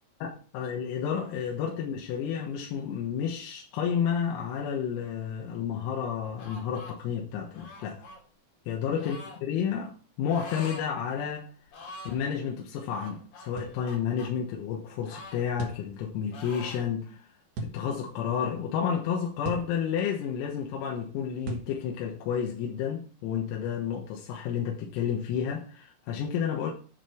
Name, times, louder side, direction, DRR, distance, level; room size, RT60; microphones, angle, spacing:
voice 1, 0.2-8.0 8.7-11.5 12.1-17.3 17.6-26.7, left 8 dB, 90° left, 4.0 m, -31 dB
sound 1, 6.4-7.0 7.5-8.2 9.0-9.4 10.3-10.9 11.2-11.3 11.7-12.2 12.9-14.3 15.1-16.1 16.3-16.9, left 2 dB, 55° left, 2.8 m, -45 dB
sound 2, 13.6-13.8 15.6-15.9 17.5-17.8 19.4-19.7 21.5-21.7, right 3 dB, 60° right, 3.0 m, -35 dB
11.0 x 5.6 x 4.5 m
omnidirectional pair, 6.0 m